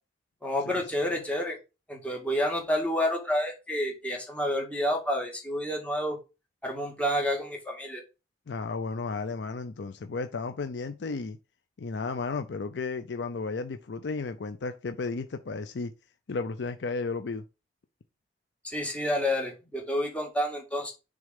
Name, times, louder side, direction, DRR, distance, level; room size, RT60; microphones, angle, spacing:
voice 1, 0.4-1.6 1.9-6.2 6.6-8.0 18.6-20.9, equal, 10° left, 1.9 m, -29 dB
voice 2, 8.5-11.4 11.8-15.9 16.3-17.4, left 4 dB, 80° left, 0.5 m, -33 dB
6.4 x 3.7 x 5.2 m
head